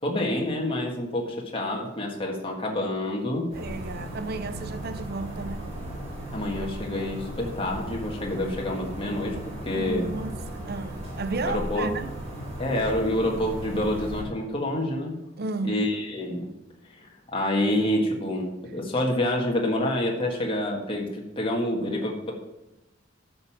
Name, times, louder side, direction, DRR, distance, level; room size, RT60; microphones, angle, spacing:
voice 1, 0.0-3.5 6.3-9.4 9.7-10.1 11.5-11.9 12.6-15.2 15.6-16.5 16.9-22.3, left 1 dB, 30° left, 1.7 m, -27 dB
sound 1, 3.5-14.2, right 1 dB, 35° right, 4.6 m, -36 dB
voice 2, 3.5-5.7 9.8-12.1 15.4-15.8, right 3 dB, 55° right, 0.8 m, -33 dB
12.0 x 5.5 x 7.4 m
head